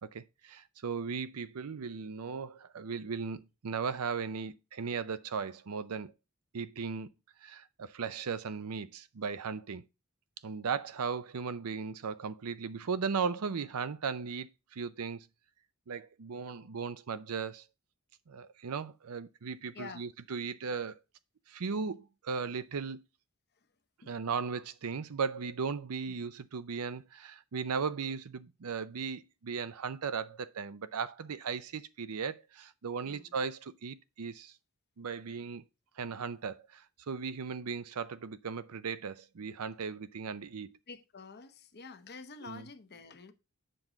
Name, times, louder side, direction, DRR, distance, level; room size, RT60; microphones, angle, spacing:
voice 1, 0.0-6.1 6.5-7.1 7.4-9.8 10.4-15.3 15.9-17.6 18.3-21.0 21.5-23.0 24.1-34.5 35.0-35.6 36.0-40.7 42.4-42.6, right 5 dB, 80° right, 0.6 m, -37 dB
voice 2, 33.0-33.4 40.9-43.3, left 4 dB, 50° left, 0.8 m, -48 dB
7.7 x 6.1 x 3.8 m
head